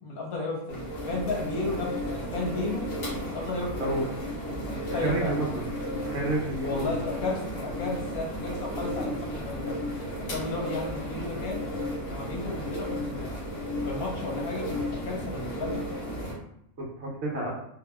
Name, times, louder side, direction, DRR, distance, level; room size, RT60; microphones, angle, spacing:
voice 1, 0.0-2.9 3.3-4.0 4.6-5.3 6.6-9.8 10.3-11.6 12.1-13.3 13.8-15.8, left 2 dB, 90° left, -1 dB, 1.3 m, -33 dB
sound 1, 0.7-16.3, equal, 55° left, 1.5 m, -34 dB
voice 2, 4.9-5.7 6.0-6.9 16.8-17.5, right 2 dB, 55° right, -3 dB, 1.0 m, -30 dB
3.5 x 2.6 x 2.3 m, 0.75 s
omnidirectional pair, 1.5 m